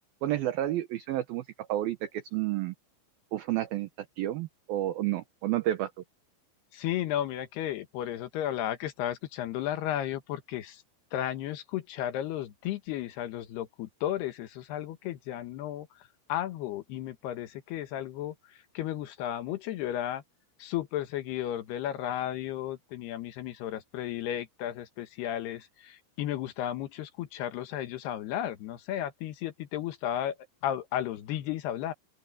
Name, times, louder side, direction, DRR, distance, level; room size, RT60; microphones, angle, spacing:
voice 1, 0.2-2.7 3.3-3.9 4.2-5.9, right 14 dB, 75° right, 2.3 m, -30 dB
voice 2, 6.7-10.8 11.1-20.2 20.6-30.4 30.6-31.9, left 12 dB, 70° left, 3.0 m, -34 dB
open air
omnidirectional pair, 5.4 m